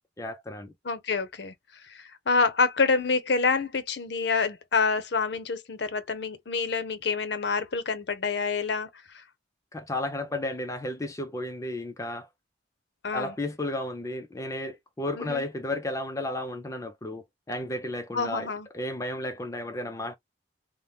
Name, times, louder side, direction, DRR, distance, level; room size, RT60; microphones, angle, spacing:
voice 1, 0.2-0.7 9.7-12.3 13.1-20.2, left 1 dB, 15° left, 0.4 m, -33 dB
voice 2, 0.8-1.5 1.9-8.9 9.1-9.2 13.0-13.3 15.2-15.4 18.1-18.7, left 4 dB, 60° left, 0.6 m, -27 dB
2.7 x 2.1 x 3.3 m
head